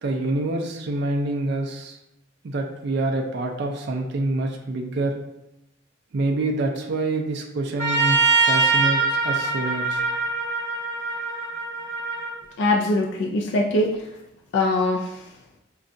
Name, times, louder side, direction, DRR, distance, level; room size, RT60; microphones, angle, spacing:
voice 1, 0.0-2.0 2.4-5.2 6.1-10.0, right 2 dB, 55° right, 2 dB, 0.4 m, -26 dB
Trumpet, 7.8-12.3, right 4 dB, 30° left, 1.4 m, -23 dB
voice 2, 12.6-14.1 14.5-15.3, left 2 dB, 55° left, 0 dB, 0.3 m, -22 dB
5.1 x 2.3 x 2.5 m, 0.89 s
head